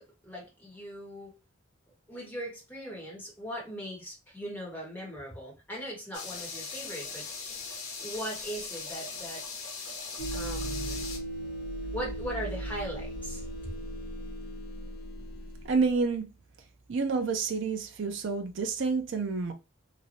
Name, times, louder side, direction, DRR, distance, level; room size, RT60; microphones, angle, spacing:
voice 1, 0.0-1.4 2.1-7.3 8.0-9.4 10.3-11.1 11.9-13.4, equal, 10° left, 1.4 m, -39 dB
sound 1, 6.1-11.2, left 4 dB, 90° left, 0.9 m, -39 dB
sound 2, 10.2-16.0, right 1 dB, 50° left, 0.6 m, -37 dB
voice 2, 15.6-16.3 16.9-19.5, right 4 dB, 60° right, 0.4 m, -29 dB
3.0 x 2.5 x 2.7 m
head